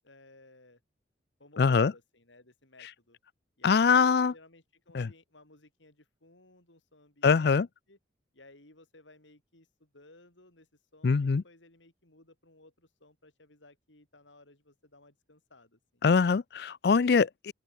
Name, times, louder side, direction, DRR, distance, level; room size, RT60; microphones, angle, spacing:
voice 1, 0.0-0.8 1.4-3.2 3.6-8.0 8.3-10.7 10.9-16.0, left 2 dB, 85° left, 6.3 m, -58 dB
voice 2, 1.6-1.9 3.6-4.3 4.9-5.1 7.2-7.7 11.0-11.4 16.0-17.5, left 5 dB, 60° left, 0.4 m, -23 dB
open air
head